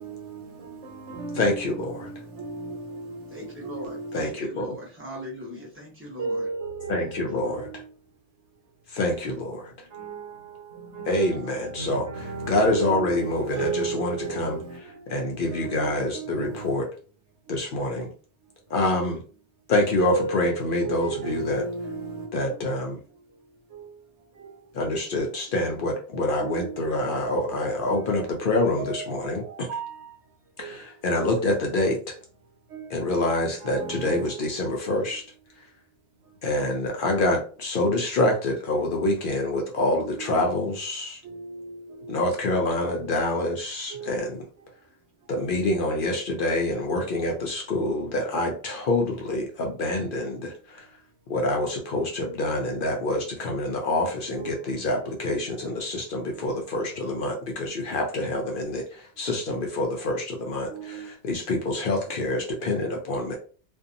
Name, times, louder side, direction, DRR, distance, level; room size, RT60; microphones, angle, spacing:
voice 1, 0.0-4.5 5.0-5.1 6.2-8.1 8.5-8.7 9.7-15.1 15.5-16.8 17.4-17.6 18.4-18.8 20.0-22.7 23.1-25.5 26.4-31.3 32.4-33.1 33.6-35.2 35.5-35.7 36.2-36.4 39.9-40.4 41.2-42.2 42.5-42.7 43.9-44.3 44.6-45.3 46.7-47.5 48.2-48.4 50.4-51.3 53.0-53.2 54.4-55.3 55.6-56.7 56.9-57.4 60.7-61.2 62.1-62.7, right 4 dB, 85° right, 1.1 m, -37 dB
voice 2, 1.4-2.1 4.1-4.8 6.9-7.7 8.9-9.9 11.1-12.1 12.4-14.6 15.1-16.9 17.5-18.1 18.7-19.2 19.7-21.6 22.3-23.0 24.7-29.7 30.6-32.1 32.9-35.2 36.4-41.2 42.1-44.4 45.3-50.9 51.3-63.4, left 1 dB, 60° left, 0.6 m, -26 dB
voice 3, 3.3-6.5 7.3-7.6, equal, 10° right, 0.8 m, -40 dB
2.6 x 2.2 x 2.6 m
omnidirectional pair, 1.1 m